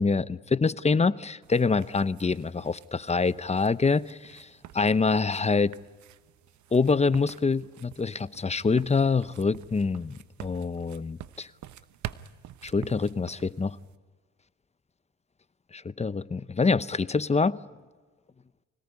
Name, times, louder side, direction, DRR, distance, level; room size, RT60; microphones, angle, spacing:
voice 1, 0.0-5.7 6.7-11.5 12.6-13.8 15.7-17.6, left 4 dB, 20° left, 0.8 m, -26 dB
sound 1, 1.4-14.0, right 12 dB, 70° right, 1.0 m, -47 dB
25.5 x 18.0 x 9.7 m
cardioid pair, 90°, 30 cm